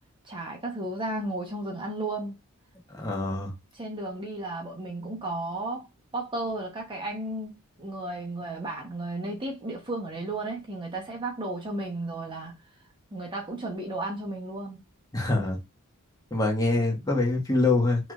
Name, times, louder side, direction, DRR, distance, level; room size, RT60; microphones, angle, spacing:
voice 1, 0.2-2.3 3.7-5.9 6.1-12.5 13.1-14.8, right 2 dB, 25° right, 0.9 m, -34 dB
voice 2, 2.9-3.5 15.1-15.6 16.3-18.1, left 2 dB, 15° left, 1.4 m, -25 dB
5.9 x 3.1 x 2.4 m
head